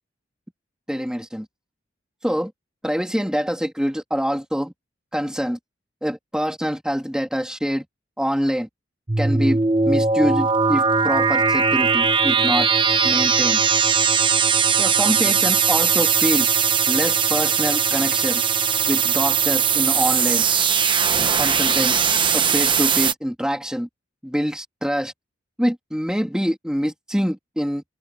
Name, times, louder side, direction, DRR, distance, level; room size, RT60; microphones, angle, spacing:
voice 1, 0.9-1.5 2.2-2.5 2.8-4.7 5.1-5.6 6.0-7.8 8.2-8.7 9.2-9.6 9.9-12.7 13.0-13.6 14.8-16.5 16.9-18.4 18.9-20.4 21.4-22.0 22.3-23.9 24.2-25.1 25.6-27.8, equal, 5° right, 3.3 m, -25 dB
sound 1, 9.1-23.1, right 6 dB, 25° right, 1.0 m, -19 dB
head